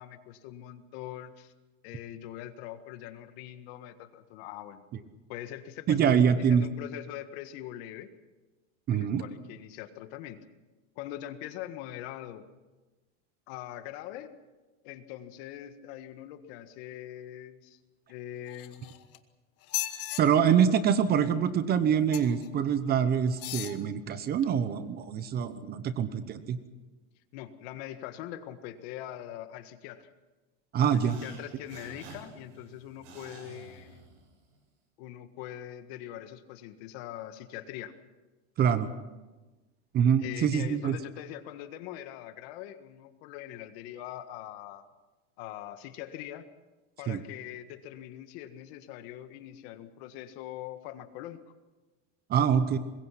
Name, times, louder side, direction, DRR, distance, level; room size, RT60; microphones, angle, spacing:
voice 1, 0.0-1.5 1.8-4.8 5.3-8.1 8.9-10.4 11.0-12.5 13.5-14.3 14.8-17.8 18.1-19.0 27.3-30.1 30.9-34.0 35.0-37.9 40.2-44.9 45.4-46.5 47.0-51.4, left 12 dB, 55° left, 10 dB, 1.7 m, -42 dB
voice 2, 5.9-6.6 8.9-9.2 20.2-26.6 30.7-31.2 38.6-38.9 39.9-41.0 47.1-47.2 52.3-52.8, right 8 dB, 25° right, 13 dB, 0.9 m, -25 dB
sound 1, 18.5-19.2 19.6-20.2 22.1-22.5 23.3-23.8 24.4-24.5, left 15 dB, 40° left, 1.4 m, -36 dB
sound 2, 30.8-34.6, right 4 dB, 90° right, 7.7 m, -50 dB
24.5 x 21.5 x 5.9 m, 1.2 s
supercardioid pair, 155°, 37 cm